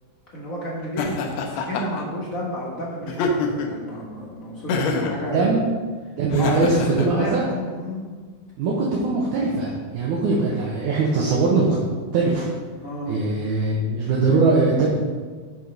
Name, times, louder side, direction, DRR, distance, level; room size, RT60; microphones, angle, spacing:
voice 1, 0.3-5.5 6.4-8.0 12.8-13.1, equal, 50° left, -5 dB, 1.0 m, -31 dB
Laughter, 1.0-2.0 3.1-3.8 4.7-5.2 6.3-7.1, left 4 dB, 85° left, 1.5 m, -25 dB
voice 2, 5.3-5.6 6.2-7.4 8.6-11.8 12.1-12.5 13.1-14.9, right 3 dB, 70° right, -4 dB, 2.2 m, -21 dB
11.0 x 4.3 x 5.2 m, 1.5 s
omnidirectional pair, 4.1 m